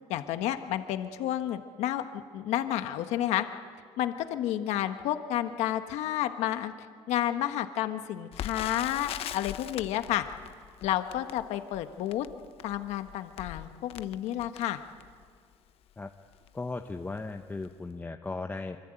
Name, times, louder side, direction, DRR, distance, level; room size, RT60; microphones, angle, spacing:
voice 1, 0.1-3.4 4.0-6.7 7.1-10.2 10.8-12.3 12.6-14.8, left 12 dB, 75° left, 8 dB, 1.3 m, -31 dB
Crackle, 8.3-15.3 15.9-16.0 16.3-16.5 17.1-17.4 17.6-17.7, left 11 dB, 60° left, 0.9 m, -42 dB
voice 2, 16.5-18.8, left 3 dB, 15° left, 5 dB, 1.0 m, -36 dB
25.0 x 24.5 x 9.0 m, 2.1 s
cardioid pair, 115°, 11 cm